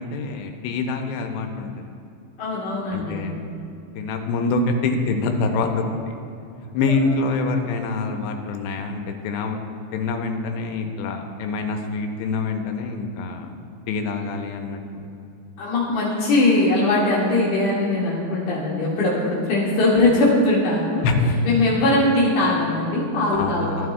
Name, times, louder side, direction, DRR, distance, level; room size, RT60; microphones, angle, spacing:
voice 1, 0.0-1.7 2.9-3.3 4.0-6.2 6.7-9.6 9.9-13.5 13.9-14.8 21.0-22.0 23.3-23.9, left 3 dB, 85° left, 4 dB, 2.8 m, -25 dB
voice 2, 2.4-3.4 6.8-6.9 15.6-21.1 21.4-23.9, left 2 dB, 70° left, -7 dB, 1.9 m, -21 dB
13.5 x 11.0 x 2.3 m, 2.7 s
omnidirectional pair, 4.9 m